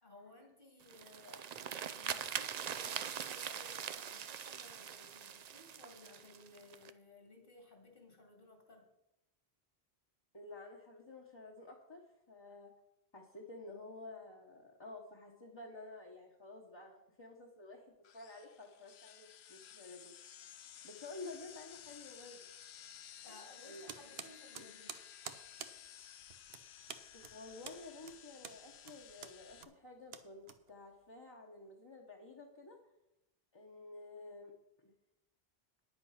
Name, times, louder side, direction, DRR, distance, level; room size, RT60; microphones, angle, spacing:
voice 1, 0.0-8.9 23.2-24.9, left 2 dB, 55° left, 1 dB, 2.4 m, -58 dB
sound 1, 0.8-6.9, right 8 dB, 55° right, 0.5 m, -42 dB
voice 2, 10.3-12.7 13.1-17.9 18.1-20.1 20.8-22.4 23.3-24.3 24.6-24.7 27.1-32.8 33.5-34.5 34.8-34.9, left 2 dB, 25° left, -1 dB, 1.2 m, -52 dB
sound 2, 18.0-29.6, left 10 dB, 80° left, 0.9 m, -55 dB
sound 3, 23.9-31.1, right 8 dB, 70° right, 1.0 m, -51 dB
9.9 x 8.0 x 5.8 m, 0.89 s
omnidirectional pair, 1.1 m